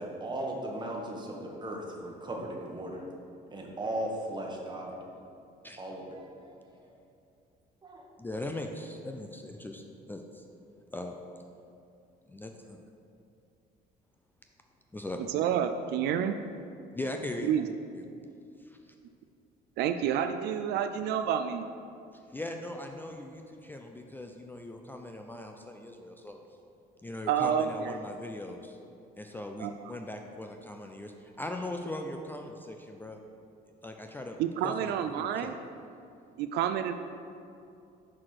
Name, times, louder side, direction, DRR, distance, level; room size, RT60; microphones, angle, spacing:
voice 1, 0.0-3.0 3.5-5.0 5.8-6.8 7.8-8.0, right 1 dB, 25° right, 0 dB, 1.2 m, -37 dB
voice 2, 8.2-10.4 10.9-11.2 12.3-12.5 14.9-15.2 16.9-17.5 17.9-18.1 18.6-18.8 22.3-26.4 27.0-28.8 29.1-33.2 33.8-34.4 34.6-35.5, left 1 dB, 10° left, 3 dB, 0.4 m, -40 dB
voice 3, 15.3-16.4 17.4-17.7 19.8-21.7 27.3-28.0 29.6-29.9 34.4-35.5 36.4-36.9, right 9 dB, 80° right, 8 dB, 0.4 m, -29 dB
5.9 x 4.9 x 6.0 m, 2.6 s
cardioid pair, 110°, 17 cm